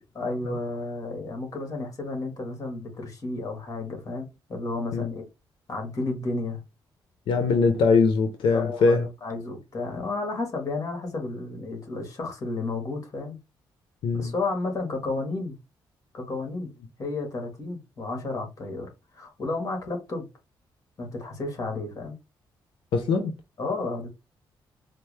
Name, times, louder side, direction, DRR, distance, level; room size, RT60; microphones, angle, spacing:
voice 1, 0.1-5.2 5.7-6.6 8.5-13.4 14.1-15.5 16.1-16.7 17.0-20.3 21.0-22.2 23.6-24.1, left 3 dB, 40° left, 1.6 m, -32 dB
voice 2, 7.3-9.1 14.0-14.3 22.9-23.3, left 4 dB, 85° left, 0.6 m, -22 dB
4.4 x 2.1 x 3.2 m
cardioid pair, 95°, 9 cm